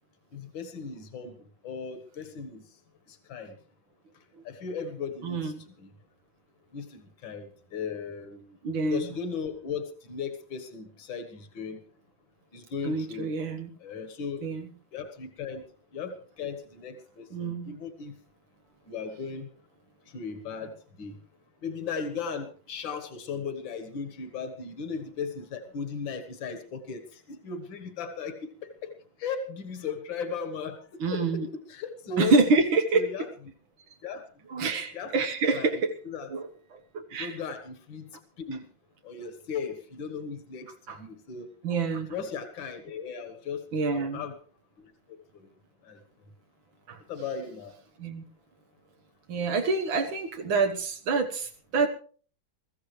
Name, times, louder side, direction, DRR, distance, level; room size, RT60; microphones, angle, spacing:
voice 1, 0.3-2.7 3.1-3.6 4.4-5.9 6.7-8.6 8.9-11.8 12.5-13.3 13.8-14.4 14.9-15.6 15.9-18.1 18.9-19.5 20.1-21.2 21.6-28.9 29.2-32.4 32.9-33.3 34.0-34.2 34.9-35.1 35.5-36.3 37.2-38.1 38.4-38.6 39.0-41.5 42.1-44.4 45.1-45.5 45.8-46.0 47.1-47.7, left 5 dB, 75° left, 8 dB, 2.2 m, -37 dB
voice 2, 8.6-9.1 12.8-13.7 14.4-14.7 17.3-17.7 31.0-31.5 32.2-33.0 34.5-35.9 36.3-36.5 36.9-37.3 40.9-41.0 41.6-42.1 43.7-44.2 46.9-47.0 48.0-48.2 49.3-51.9, right 4 dB, 85° right, 4 dB, 2.1 m, -26 dB
22.5 x 14.5 x 3.2 m, 0.43 s
omnidirectional pair, 2.1 m